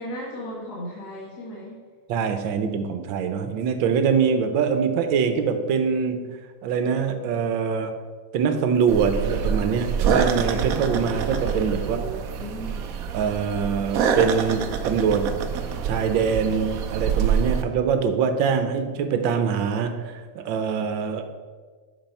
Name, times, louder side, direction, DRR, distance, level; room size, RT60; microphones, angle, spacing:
voice 1, 0.0-1.8 11.8-12.9, equal, 50° left, -5 dB, 2.0 m, -36 dB
voice 2, 2.1-8.0 8.3-12.1 13.1-15.3 15.8-21.3, right 6 dB, 70° right, 8 dB, 1.4 m, -24 dB
sound 1, 8.9-17.6, right 7 dB, 90° right, 0.7 m, -26 dB
7.3 x 6.1 x 5.5 m, 1.5 s
omnidirectional pair, 2.3 m